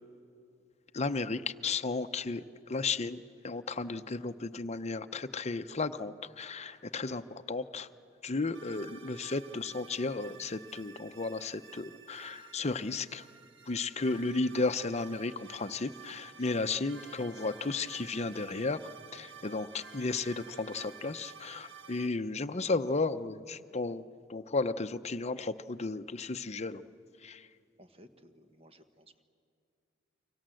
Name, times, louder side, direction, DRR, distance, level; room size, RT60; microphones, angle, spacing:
voice 1, 0.9-7.9 8.2-13.3 13.7-18.8 19.1-24.0 24.3-26.9 27.2-27.5, left 3 dB, 35° left, 10 dB, 0.7 m, -34 dB
sound 1, 8.5-22.1, right 6 dB, 70° right, 1.4 m, -52 dB
voice 2, 27.8-29.1, equal, 30° right, 8 dB, 1.4 m, -57 dB
29.0 x 25.0 x 7.7 m, 2.5 s
head